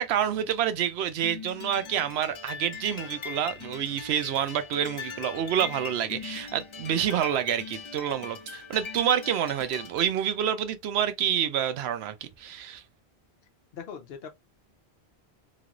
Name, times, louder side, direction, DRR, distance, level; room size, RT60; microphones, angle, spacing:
voice 1, 0.0-12.8, right 9 dB, 80° right, 0.8 m, -28 dB
sound 1, 1.2-10.1, left 6 dB, 50° left, 0.3 m, -41 dB
voice 2, 13.7-14.3, left 7 dB, 70° left, 0.9 m, -40 dB
3.0 x 2.9 x 2.4 m
omnidirectional pair, 1.1 m